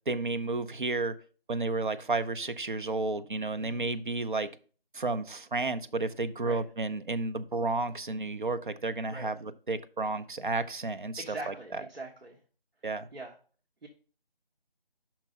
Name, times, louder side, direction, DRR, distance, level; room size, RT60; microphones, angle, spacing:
voice 1, 0.1-1.2 1.5-4.5 4.9-11.5 12.8-13.1, right 3 dB, 55° right, 0.6 m, -32 dB
voice 2, 3.6-3.9 6.4-6.6 9.1-9.3 11.2-12.4 13.1-13.3 13.8-13.9, right 2 dB, 80° right, 1.4 m, -42 dB
5.9 x 4.8 x 5.2 m
figure-of-eight pair, 175°, 30 cm